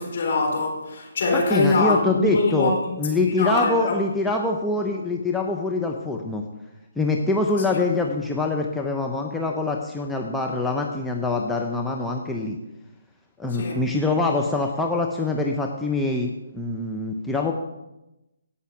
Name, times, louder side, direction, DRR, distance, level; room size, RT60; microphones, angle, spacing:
voice 1, 0.0-2.9 3.2-4.0 7.7-7.8 13.5-13.8, left 3 dB, 55° left, 0 dB, 3.9 m, -23 dB
voice 2, 1.3-6.4 7.0-12.6 13.4-17.5, left 2 dB, 5° left, 0 dB, 0.8 m, -24 dB
17.0 x 5.7 x 5.0 m, 0.95 s
figure-of-eight pair, 145°, 0 cm